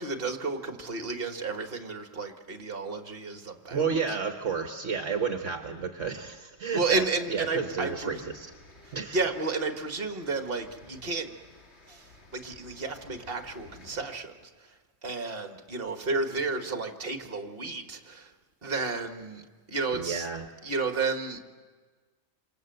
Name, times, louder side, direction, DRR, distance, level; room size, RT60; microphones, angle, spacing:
voice 1, 0.0-4.0 6.7-8.2 8.9-11.3 11.9-14.7 15.0-18.3 18.6-19.4 19.7-20.3 20.6-21.4, right 3 dB, 45° right, 6 dB, 2.0 m, -32 dB
voice 2, 3.7-7.0 7.3-8.5 8.9-9.2 19.9-20.5, right 5 dB, 65° right, 5 dB, 1.5 m, -31 dB
sound 1, 6.7-14.1, left 2 dB, 55° left, 2.8 m, -54 dB
27.0 x 26.5 x 7.9 m, 1.4 s
omnidirectional pair, 1.3 m